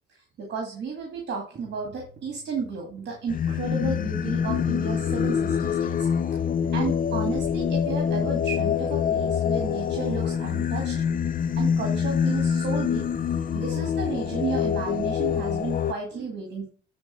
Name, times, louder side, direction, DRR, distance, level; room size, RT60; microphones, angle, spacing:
voice 1, 0.4-5.9 6.7-11.0 11.5-13.0 13.5-16.7, right 4 dB, 60° right, 2 dB, 2.1 m, -32 dB
sound 1, 1.5-15.5, right 3 dB, 40° right, 1.7 m, -49 dB
Singing, 3.3-15.9, left 8 dB, 45° left, 0.6 m, -25 dB
8.7 x 3.9 x 6.2 m, 0.41 s
cardioid pair, 90°, 20 cm